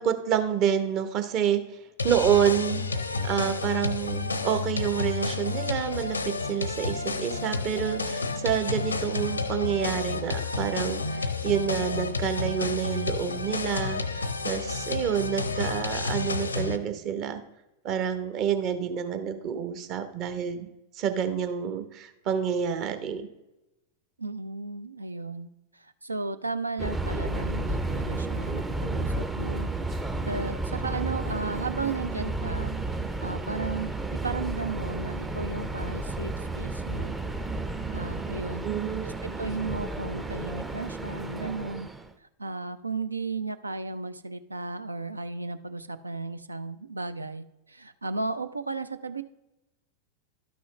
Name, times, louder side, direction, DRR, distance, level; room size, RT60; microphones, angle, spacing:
voice 1, 0.0-1.6 2.0-2.8 3.2-17.4 17.8-23.3 38.6-39.4, right 8 dB, 40° right, 8 dB, 0.9 m, -28 dB
sound 1, 2.0-16.8, left 4 dB, 80° left, 0.5 m, -30 dB
voice 2, 24.2-32.7 33.2-33.9 34.2-37.1 37.9-38.7 39.2-41.9 42.4-49.2, right 3 dB, 80° right, 13 dB, 0.5 m, -34 dB
Subway metro underground, 26.8-42.1, right 2 dB, 10° right, 0.5 m, -32 dB
12.0 x 6.2 x 3.1 m, 0.97 s
figure-of-eight pair, 90°, 0 cm